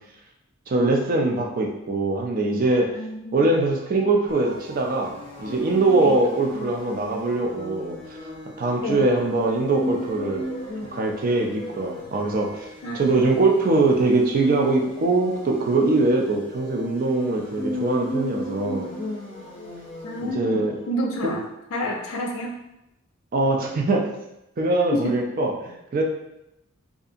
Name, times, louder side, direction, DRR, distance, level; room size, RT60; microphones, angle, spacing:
voice 1, 0.7-2.9 3.3-5.1 5.4-8.0 8.6-10.4 10.9-12.7 12.9-18.9 20.2-20.7 21.2-21.3 23.3-24.1 24.6-26.0, right 2 dB, 45° right, 1 dB, 0.4 m, -22 dB
voice 2, 3.0-3.5 6.0-6.2 8.8-9.1 12.8-13.1 20.0-21.4 21.7-22.6 24.9-25.2, equal, 80° left, 0 dB, 0.4 m, -29 dB
sound 1, 4.3-20.9, left 1 dB, 25° left, 0.5 m, -36 dB
2.7 x 2.4 x 2.5 m, 0.86 s
head